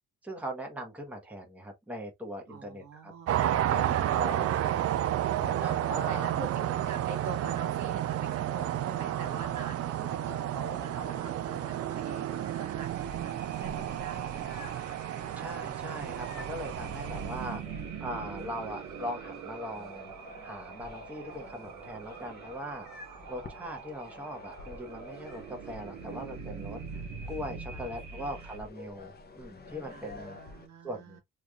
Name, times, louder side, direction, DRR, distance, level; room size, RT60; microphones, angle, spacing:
voice 1, 0.2-3.1 3.7-4.5 5.4-6.3 15.4-17.6 18.0-20.1 20.4-22.9 23.3-30.4 30.8-31.2, equal, 5° right, 1.0 m, -40 dB
voice 2, 2.5-3.3 5.9-14.7 27.7-28.5 29.9-31.2, right 4 dB, 70° right, 1.4 m, -45 dB
sound 1, 3.3-17.6, right 12 dB, 55° right, 0.4 m, -31 dB
sound 2, 8.9-28.6, right 7 dB, 85° right, 0.8 m, -43 dB
sound 3, 13.5-30.7, left 3 dB, 35° left, 0.7 m, -50 dB
3.1 x 2.4 x 2.3 m
cardioid pair, 90°, 30 cm